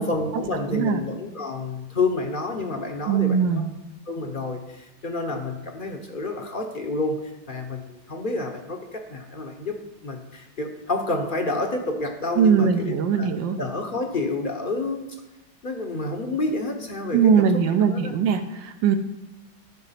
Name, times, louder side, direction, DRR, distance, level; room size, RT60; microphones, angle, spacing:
voice 1, 0.0-3.7 4.1-9.8 10.0-13.3 13.6-15.1 15.6-18.1, left 2 dB, 45° left, 3 dB, 0.7 m, -29 dB
voice 2, 0.7-1.0 3.1-3.7 12.4-13.6 17.1-19.0, right 7 dB, 85° right, 6 dB, 1.4 m, -20 dB
12.0 x 5.0 x 5.6 m, 0.98 s
omnidirectional pair, 2.0 m